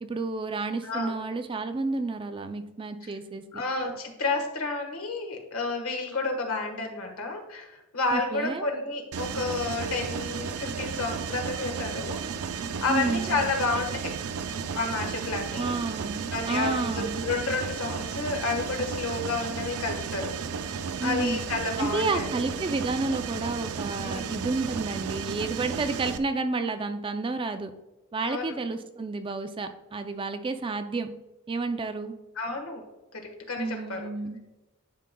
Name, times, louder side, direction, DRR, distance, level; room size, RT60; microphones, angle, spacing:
voice 1, 0.0-3.6 8.1-8.7 12.9-13.4 15.6-17.3 21.0-21.4 21.8-27.7 28.1-31.1 31.5-32.2 33.6-34.4, right 3 dB, 25° right, 9 dB, 0.4 m, -30 dB
voice 2, 0.8-1.2 3.0-3.1 3.5-12.2 12.8-14.2 14.7-15.8 16.3-20.3 21.0-22.3 24.0-24.4 28.2-28.5 32.3-32.8 33.1-34.1, left 3 dB, 75° left, 3 dB, 1.4 m, -30 dB
Mechanisms, 9.1-26.2, right 6 dB, 90° right, 0.5 m, -34 dB
11.0 x 5.2 x 2.2 m, 1.1 s
head